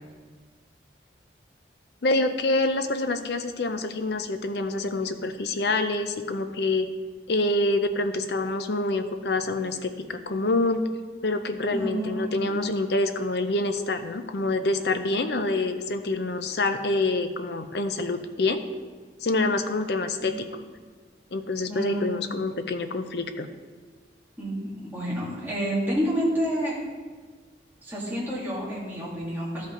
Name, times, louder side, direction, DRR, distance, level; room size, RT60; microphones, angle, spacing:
voice 1, 2.0-6.9 7.3-10.9 11.2-18.6 19.2-20.5 21.3-23.5, left 2 dB, 65° left, 8 dB, 0.6 m, -26 dB
voice 2, 11.7-12.7 20.2-20.3 21.7-22.3 24.4-26.8 27.8-29.6, equal, 10° right, -7 dB, 2.3 m, -29 dB
12.5 x 5.2 x 3.8 m, 1.5 s
head